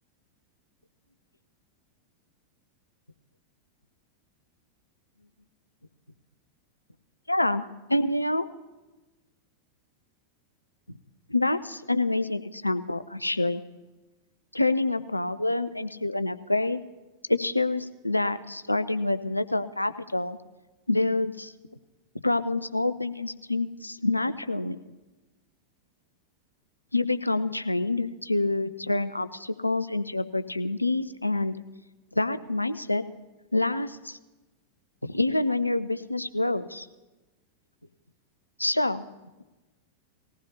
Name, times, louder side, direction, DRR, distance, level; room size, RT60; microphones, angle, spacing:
voice 1, 7.3-8.5 11.3-13.6 14.5-16.8 17.3-20.4 20.9-21.5 22.2-24.8 26.9-31.6 32.2-33.0 33.5-34.2 35.0-36.9 38.6-39.0, left 2 dB, 85° left, 12 dB, 0.5 m, -27 dB
19.0 x 15.0 x 2.8 m, 1.1 s
figure-of-eight pair, 90°, 0 cm